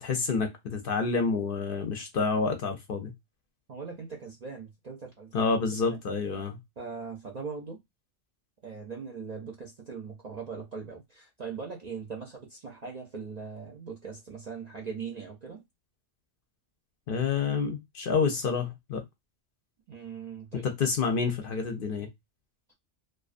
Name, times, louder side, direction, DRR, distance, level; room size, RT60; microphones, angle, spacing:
voice 1, 0.0-3.1 5.3-6.6 17.1-19.0 20.5-22.1, left 5 dB, 60° left, 0.6 m, -28 dB
voice 2, 3.7-6.0 6.8-7.8 8.6-15.6 19.9-20.7 22.7-22.8, right 5 dB, 55° right, 0.4 m, -40 dB
2.4 x 2.2 x 2.4 m
omnidirectional pair, 1.2 m